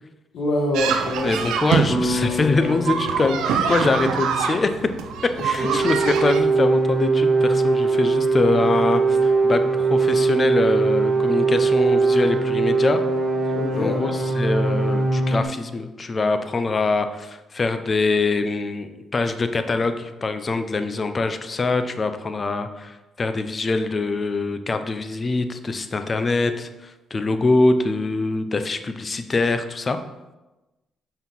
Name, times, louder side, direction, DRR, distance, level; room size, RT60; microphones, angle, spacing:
voice 1, 0.3-1.4 5.6-5.8 13.5-14.2, left 1 dB, 70° left, -3 dB, 1.3 m, -25 dB
sound 1, 0.7-6.4, right 7 dB, 90° right, 0.6 m, -25 dB
voice 2, 1.2-4.7 5.4-13.0 13.8-14.1 14.4-30.0, left 3 dB, 35° left, 9 dB, 0.6 m, -23 dB
sound 2, 1.9-6.2, left 2 dB, 10° left, 1.1 m, -31 dB
sound 3, 5.6-15.4, right 3 dB, 35° right, 0.9 m, -20 dB
5.6 x 4.6 x 5.5 m, 1.1 s
cardioid pair, 90°, 0 cm